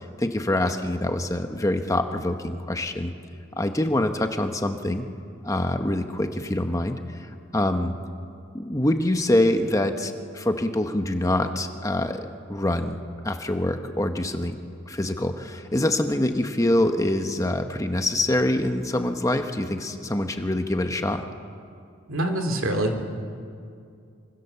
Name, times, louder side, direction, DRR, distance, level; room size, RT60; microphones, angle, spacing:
voice 1, 0.2-3.1 3.6-5.1 5.4-7.0 7.5-7.9 8.5-13.0 13.2-14.6 14.9-21.2, left 1 dB, 15° left, 6 dB, 1.0 m, -25 dB
voice 2, 22.1-23.0, right 1 dB, 85° right, 4 dB, 2.8 m, -25 dB
27.0 x 24.5 x 6.9 m, 2.4 s
head